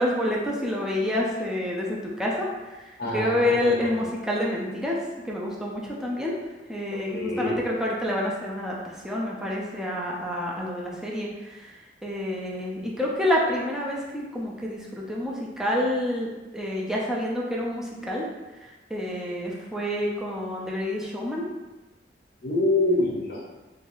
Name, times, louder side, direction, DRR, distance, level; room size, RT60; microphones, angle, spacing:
voice 1, 0.0-5.0 5.2-18.3 18.5-21.5, left 1 dB, 5° right, -4 dB, 0.4 m, -28 dB
voice 2, 3.0-4.0 6.9-7.6 22.4-23.4, left 2 dB, 60° left, -4 dB, 0.6 m, -26 dB
3.2 x 2.3 x 2.5 m, 1.1 s
head